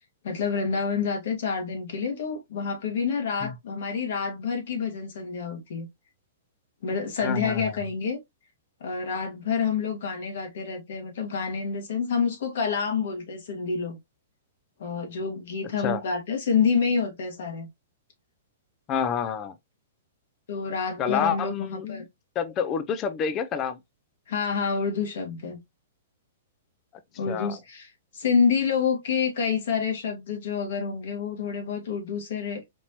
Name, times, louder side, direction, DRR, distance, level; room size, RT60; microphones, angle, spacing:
voice 1, 0.2-5.9 6.8-8.2 8.8-14.0 14.8-17.7 20.5-22.1 24.3-25.6 27.2-32.6, left 6 dB, 65° left, 1.6 m, -28 dB
voice 2, 7.2-7.8 15.8-16.0 18.9-19.5 21.0-22.0 22.4-23.8 27.3-27.6, left 7 dB, 30° left, 0.4 m, -28 dB
4.4 x 2.7 x 2.9 m
hypercardioid pair, 130°, 0 cm